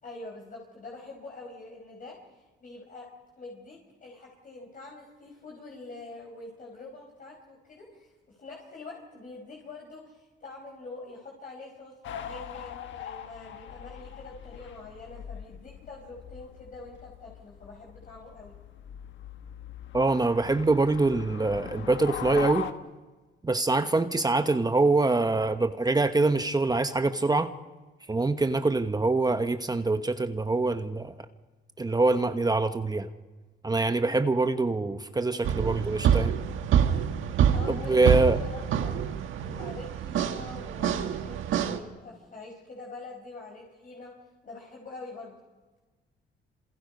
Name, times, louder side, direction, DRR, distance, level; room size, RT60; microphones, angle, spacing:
voice 1, 0.0-3.0 3.4-18.5 37.5-44.1 44.4-45.4, left 3 dB, 45° left, -1 dB, 5.2 m, -45 dB
sound 1, 12.0-22.7, left 9 dB, 70° left, 1.5 m, -41 dB
voice 2, 19.9-22.7 23.4-27.5 28.1-31.2 31.8-33.1 33.6-36.4 37.7-38.4, right 3 dB, 20° right, 8 dB, 1.1 m, -24 dB
sound 2, 35.4-41.8, right 9 dB, 80° right, 1.7 m, -26 dB
28.0 x 27.5 x 5.4 m, 1.3 s
cardioid pair, 90°, 20 cm